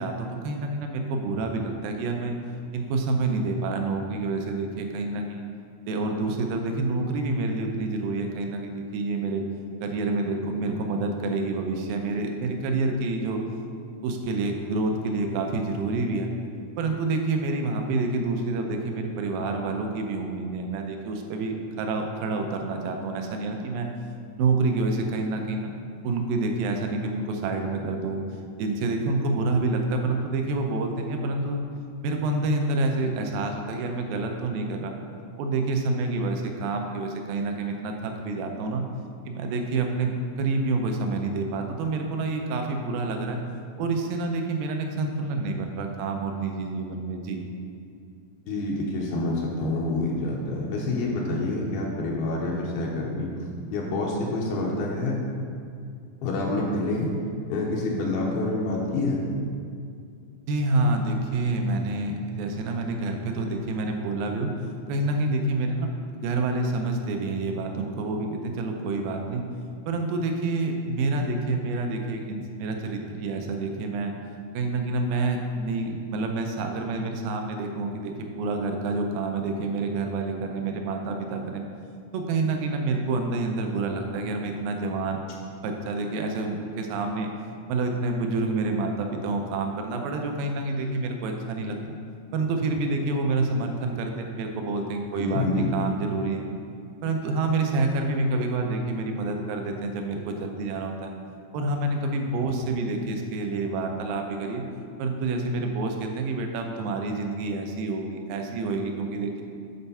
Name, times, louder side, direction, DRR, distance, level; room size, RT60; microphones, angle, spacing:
voice 1, 0.0-2.4 2.7-5.4 5.9-9.4 9.8-13.4 14.0-16.3 16.8-23.9 24.4-25.7 26.0-28.2 28.6-31.6 32.0-34.9 35.4-38.8 39.3-43.4 43.8-47.4 60.5-64.5 64.9-65.9 66.1-69.4 69.9-74.1 74.5-81.7 82.1-85.2 85.6-87.3 87.7-92.0 92.3-95.5 95.7-96.5 97.0-101.1 101.5-104.6 105.0-109.4, right 3 dB, 75° right, 3 dB, 2.3 m, -28 dB
voice 2, 48.5-53.3 53.7-55.2 56.2-57.1 57.5-59.2 95.1-95.7, left 2 dB, 80° left, -3 dB, 2.7 m, -27 dB
8.1 x 4.4 x 5.5 m, 2.3 s
omnidirectional pair, 4.3 m